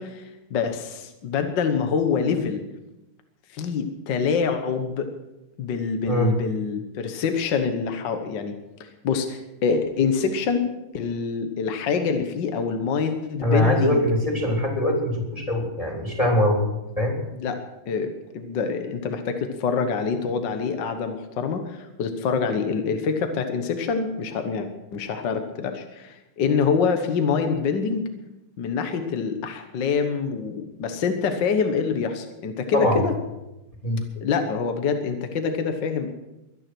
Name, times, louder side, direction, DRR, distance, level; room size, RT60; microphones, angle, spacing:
voice 1, 0.0-2.6 3.5-5.1 5.6-10.7 10.9-14.0 17.3-28.1 28.6-33.1 34.2-36.1, left 5 dB, 60° left, 6 dB, 1.8 m, -26 dB
voice 2, 13.4-16.6 17.0-17.2 32.7-33.0 33.8-34.0, left 1 dB, 15° left, 1 dB, 3.3 m, -22 dB
23.0 x 9.8 x 6.1 m, 0.95 s
omnidirectional pair, 2.3 m